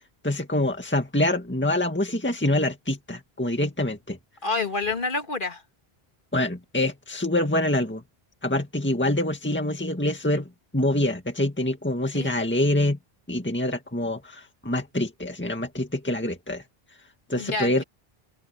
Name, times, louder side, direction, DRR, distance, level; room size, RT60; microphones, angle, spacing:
voice 1, 0.2-4.2 6.3-8.0 8.4-13.0 13.3-16.6 17.3-17.8, left 1 dB, 10° left, 2.0 m, -25 dB
voice 2, 4.4-5.6 12.1-12.3 17.4-17.8, left 3 dB, 50° left, 2.1 m, -28 dB
open air
omnidirectional pair, 1.1 m